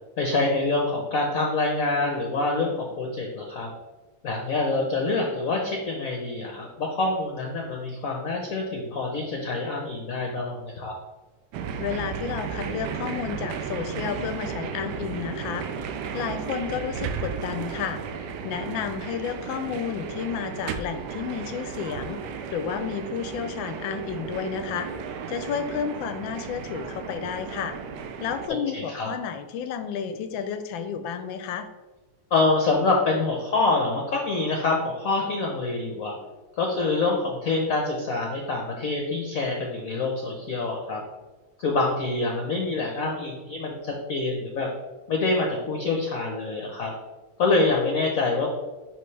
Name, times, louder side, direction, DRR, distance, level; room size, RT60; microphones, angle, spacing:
voice 1, 0.2-3.7 4.2-10.9 28.5-29.1 32.3-36.1 36.6-41.0 41.6-44.7 45.1-46.9 47.4-48.5, left 3 dB, 60° left, 1 dB, 0.9 m, -26 dB
sound 1, 11.5-28.5, right 6 dB, 75° right, 1.0 m, -34 dB
voice 2, 11.8-15.7 16.1-24.9 25.3-27.8 28.2-31.7, left 7 dB, 75° left, 9 dB, 1.2 m, -31 dB
10.5 x 3.5 x 3.2 m, 1.2 s
omnidirectional pair, 2.4 m